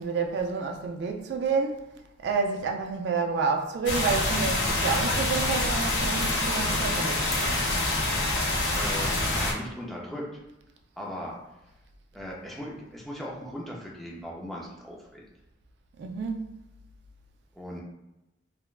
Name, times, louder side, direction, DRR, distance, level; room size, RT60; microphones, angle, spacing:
voice 1, 0.0-1.8 2.2-7.2 16.0-16.5, right 4 dB, 60° right, 0.3 m, -29 dB
sound 1, 3.9-9.5, left 2 dB, 70° left, 0.6 m, -26 dB
voice 2, 8.7-10.4 11.0-11.3 12.1-15.2 17.5-17.8, equal, ahead, 0.4 m, -38 dB
3.2 x 2.1 x 2.3 m
head